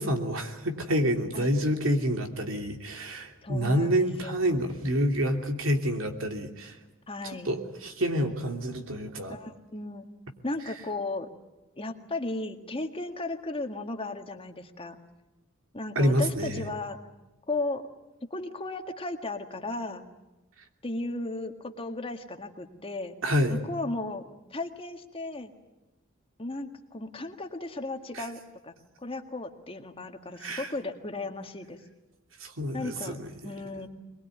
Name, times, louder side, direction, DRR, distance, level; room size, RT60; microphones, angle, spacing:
voice 1, 0.0-6.8 7.4-9.4 15.9-16.7 23.2-23.6 28.1-28.3 30.4-30.7 32.4-33.5, equal, 70° right, 4 dB, 3.0 m, -28 dB
voice 2, 3.4-4.7 7.1-7.6 9.3-10.1 10.4-11.3 11.8-15.0 15.7-17.0 17.5-17.8 18.3-20.1 20.8-23.2 23.5-25.5 26.4-31.8 32.7-33.2 33.4-33.9, left 2 dB, 25° left, 5 dB, 1.9 m, -35 dB
23.5 x 21.5 x 9.4 m, 1.0 s
head